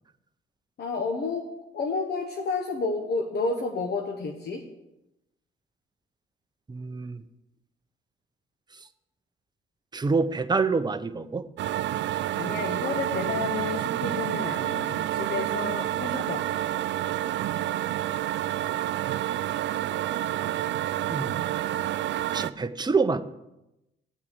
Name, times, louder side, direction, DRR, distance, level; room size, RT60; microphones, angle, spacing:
voice 1, 0.8-1.5 1.7-4.6 12.4-16.6, left 3 dB, 55° left, 3 dB, 1.2 m, -31 dB
voice 2, 6.7-7.2 9.9-11.4 21.1-21.3 22.3-23.2, right 4 dB, 20° right, 10 dB, 0.7 m, -26 dB
sound 1, 11.6-22.5, right 13 dB, 65° right, 0.4 m, -29 dB
8.9 x 7.1 x 6.7 m, 0.90 s
cardioid pair, 90°, 20 cm